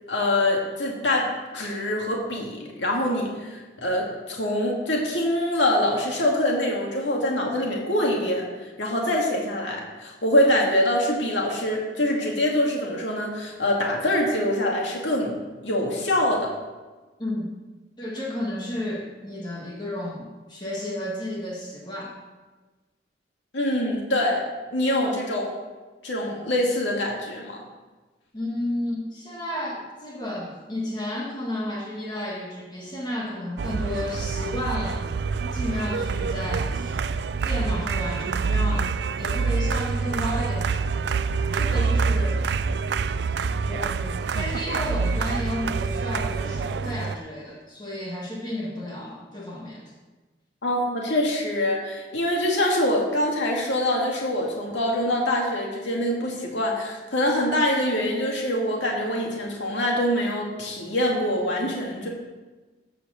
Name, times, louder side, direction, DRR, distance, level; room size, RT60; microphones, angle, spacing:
voice 1, 0.1-15.3 15.6-16.5 23.5-24.4 24.7-25.5 26.0-27.6 50.6-62.1, left 1 dB, 75° left, -2 dB, 2.2 m, -24 dB
voice 2, 17.2-17.5 18.0-22.2 28.3-35.0 35.5-37.0 37.4-40.8 41.5-42.5 43.7-49.9, left 1 dB, 25° left, -3 dB, 1.8 m, -32 dB
sound 1, 33.6-47.2, right 4 dB, 65° right, 0.4 m, -26 dB
15.0 x 5.0 x 6.4 m, 1.2 s
head